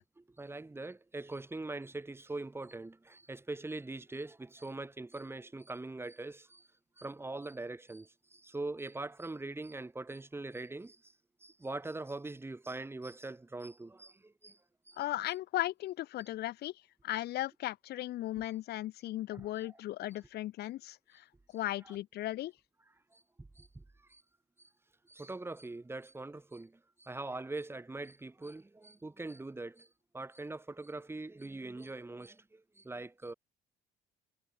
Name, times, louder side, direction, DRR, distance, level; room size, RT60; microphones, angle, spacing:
voice 1, 0.2-6.7 7.0-11.1 11.4-14.6 14.9-15.0 18.4-18.5 19.3-19.8 23.1-23.8 24.1-24.2 25.1-29.9 30.1-33.3, right 2 dB, 15° right, 6.9 m, -42 dB
voice 2, 15.0-16.7 17.0-21.2 21.5-22.5, left 15 dB, 75° left, 4.5 m, -36 dB
cardioid pair, 110°, 17 cm